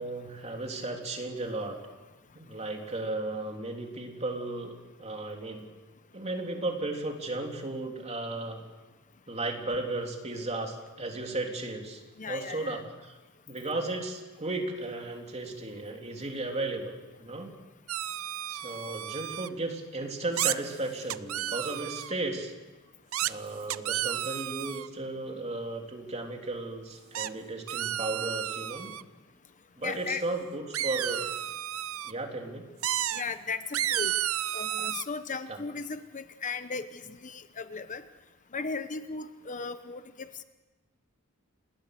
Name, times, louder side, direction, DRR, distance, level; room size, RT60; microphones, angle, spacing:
voice 1, 0.0-1.8 2.3-5.6 6.1-8.6 9.3-13.1 13.5-17.5 18.5-22.5 23.2-28.9 29.8-31.3 32.0-32.7 35.5-35.6, right 2 dB, 30° right, 2 dB, 3.4 m, -35 dB
voice 2, 12.2-12.8 29.8-30.2 33.1-34.1 34.5-38.0 38.5-40.4, left 4 dB, 35° left, 11 dB, 0.9 m, -36 dB
sound 1, 17.9-19.5 20.4-20.6 21.1-22.1 23.1-23.3 23.7-24.9 27.1-27.3 27.7-29.0 30.7-32.1 32.8-33.2 33.7-35.0, right 11 dB, 70° right, 0.7 m, -32 dB
28.0 x 20.5 x 6.7 m, 1.2 s
head